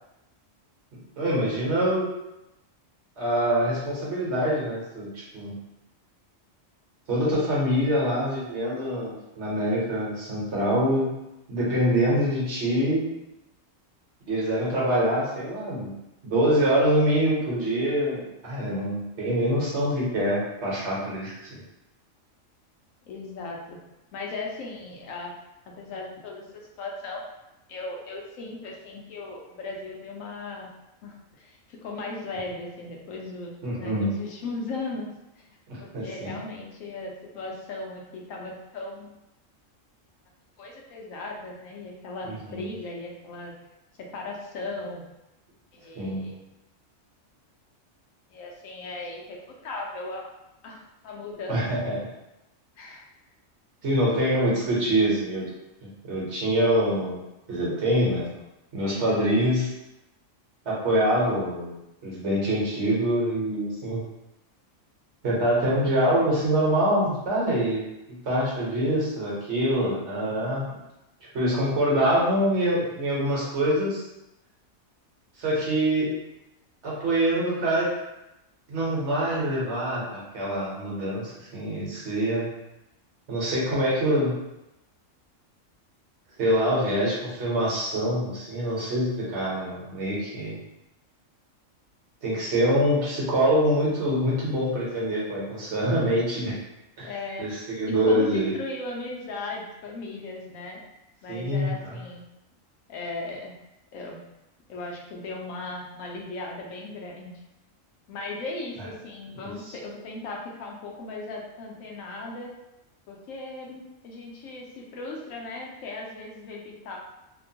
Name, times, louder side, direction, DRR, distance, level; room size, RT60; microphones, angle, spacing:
voice 1, 1.2-2.1 3.2-5.6 7.1-11.1 11.5-13.1 14.2-15.9 16.2-21.5 33.6-34.1 35.9-36.3 42.2-42.6 45.9-46.3 51.5-52.0 53.8-55.5 56.0-57.2 57.5-58.4 58.7-59.7 60.6-64.0 65.2-67.9 68.2-70.6 71.3-74.0 75.4-76.1 76.8-77.9 78.7-82.5 83.3-84.3 86.4-90.6 92.2-96.5 97.0-97.1 97.4-98.5 101.3-101.9 109.4-109.5, equal, 60° right, -6 dB, 1.1 m, -25 dB
voice 2, 23.1-23.8 24.1-25.3 25.7-26.4 26.8-27.2 27.7-30.7 31.0-35.5 35.8-39.2 40.6-43.5 44.0-45.0 45.7-46.4 48.3-50.3 50.6-51.6 52.8-53.0 96.0-96.1 97.0-97.5 97.8-100.8 101.2-102.2 102.9-103.5 103.9-104.2 104.7-107.4 108.1-112.5 113.1-117.0, left 2 dB, 90° left, -1 dB, 1.0 m, -37 dB
2.9 x 2.1 x 2.7 m, 0.92 s
omnidirectional pair, 1.4 m